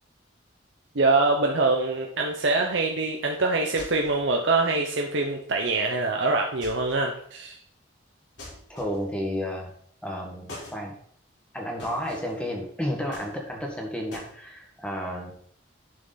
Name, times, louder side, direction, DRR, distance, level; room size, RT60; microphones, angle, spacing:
voice 1, 0.9-7.6, right 3 dB, 75° right, 1 dB, 1.0 m, -24 dB
sound 1, 3.8-4.3 6.6-7.1 8.4-9.2 10.5-10.8 11.8-12.4 13.1-13.7 14.1-14.3, left 1 dB, 75° left, 4.3 m, -43 dB
voice 2, 8.7-9.7 10.0-10.9 11.5-15.3, equal, 5° left, 0 dB, 1.6 m, -32 dB
11.0 x 5.9 x 4.1 m, 0.62 s
head